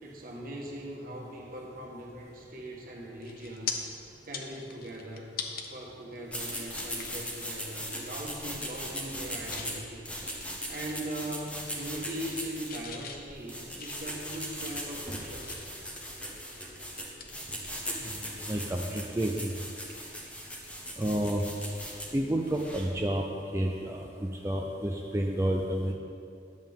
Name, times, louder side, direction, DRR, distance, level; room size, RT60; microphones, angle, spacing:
voice 1, 0.0-3.8 4.2-5.3 5.7-10.0 10.7-15.5, right 1 dB, 55° right, -1 dB, 1.4 m, -40 dB
sound 1, 2.7-2.9 3.2-3.7 4.2-5.7 6.1-6.2 6.7-7.2 7.6-7.8 8.2-8.6 8.9-9.7 10.1-11.4 11.7-12.4 12.7-15.8 16.3-18.1 18.4-18.6 20.5-20.6, left 7 dB, 55° left, 0.7 m, -42 dB
sound 2, 6.3-23.0, equal, 5° left, 1.2 m, -39 dB
voice 2, 18.5-19.5 21.0-21.4 22.1-23.2 23.5-25.9, right 1 dB, 15° right, 0 dB, 0.4 m, -30 dB
10.5 x 7.5 x 3.6 m, 2.4 s
head